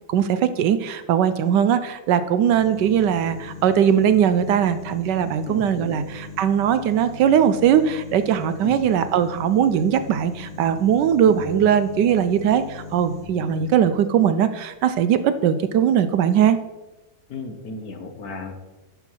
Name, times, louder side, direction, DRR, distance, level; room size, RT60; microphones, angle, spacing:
voice 1, 0.1-16.6, right 9 dB, 75° right, 12 dB, 1.2 m, -20 dB
sound 1, 2.5-13.2, left 4 dB, 35° right, 3.3 m, -39 dB
voice 2, 5.4-6.1 8.6-8.9 11.2-11.7 13.4-13.8 17.3-18.5, left 4 dB, 60° left, 4 dB, 1.4 m, -35 dB
11.0 x 5.8 x 4.4 m, 1.1 s
omnidirectional pair, 2.0 m